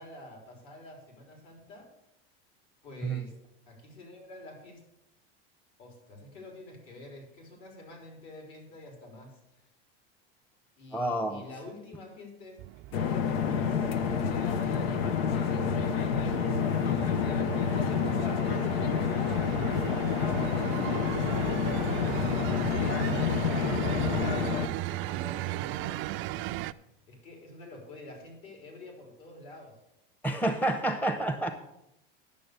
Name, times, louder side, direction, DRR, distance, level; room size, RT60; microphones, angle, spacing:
voice 1, 0.0-1.9 2.8-3.3 3.7-4.8 5.8-9.7 10.8-13.3 13.5-13.9 14.2-17.3 17.5-22.4 22.7-26.6 27.1-29.8, left 2 dB, 65° left, 2 dB, 4.2 m, -48 dB
voice 2, 10.9-11.4 30.2-31.5, right 1 dB, 5° left, 7 dB, 0.8 m, -29 dB
sound 1, 12.6-26.7, right 17 dB, 45° right, 0.4 m, -37 dB
sound 2, 12.9-24.7, left 7 dB, 90° left, 0.9 m, -28 dB
10.5 x 6.8 x 6.7 m, 0.83 s
supercardioid pair, 125°, 29 cm